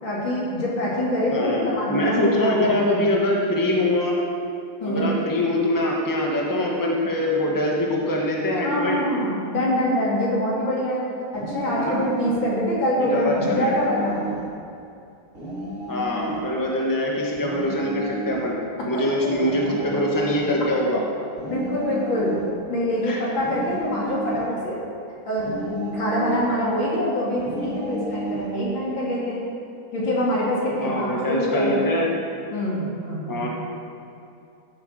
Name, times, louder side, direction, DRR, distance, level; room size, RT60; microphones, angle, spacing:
voice 1, 0.0-2.7 4.8-5.1 8.6-11.0 11.3-14.2 18.8-19.4 21.5-22.4 22.7-24.8 25.3-29.4 29.9-32.0 32.5-33.5, equal, 75° left, -6 dB, 4.0 m, -25 dB
voice 2, 1.3-4.2 4.8-9.1 11.7-12.0 13.0-13.8 15.9-18.6 18.9-21.0 23.0-23.2 30.8-32.1 33.3-33.5, left 1 dB, 10° left, -2 dB, 1.7 m, -23 dB
sound 1, 11.3-12.5 13.3-14.5 15.3-16.5 17.3-18.4 19.4-20.5 21.4-22.5 23.4-24.5 25.4-26.5 27.4-28.5, right 1 dB, 35° right, 3.3 m, -32 dB
14.0 x 8.4 x 6.6 m, 2.6 s
omnidirectional pair, 2.1 m